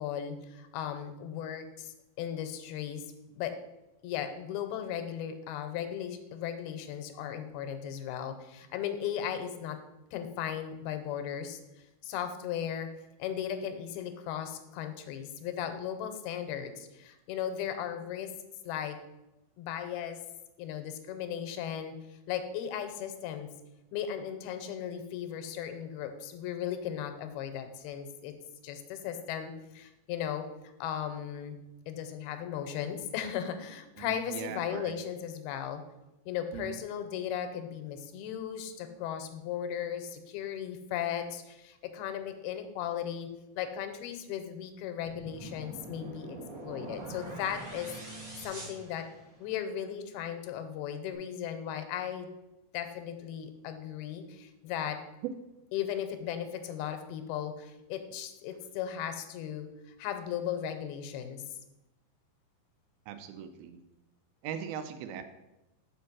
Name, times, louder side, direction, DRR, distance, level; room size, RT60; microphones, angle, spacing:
voice 1, 0.0-3.0 3.4-3.5 4.0-9.8 10.1-11.6 12.0-12.9 13.2-18.3 18.6-19.0 19.6-20.2 20.6-22.0 22.3-23.5 23.9-28.3 28.6-30.4 30.8-31.6 31.9-35.8 36.3-43.3 43.6-46.4 46.6-47.9 48.4-49.1 49.4-52.3 52.7-55.0 55.7-59.7 60.0-61.4, left 9 dB, 85° left, 8 dB, 2.6 m, -36 dB
voice 2, 34.0-34.9 36.5-36.8 63.1-63.8 64.4-65.2, right 8 dB, 85° right, 9 dB, 2.5 m, -40 dB
sound 1, 45.0-49.6, right 2 dB, 35° right, 1.4 m, -44 dB
5.6 x 5.2 x 5.9 m, 0.95 s
omnidirectional pair, 4.4 m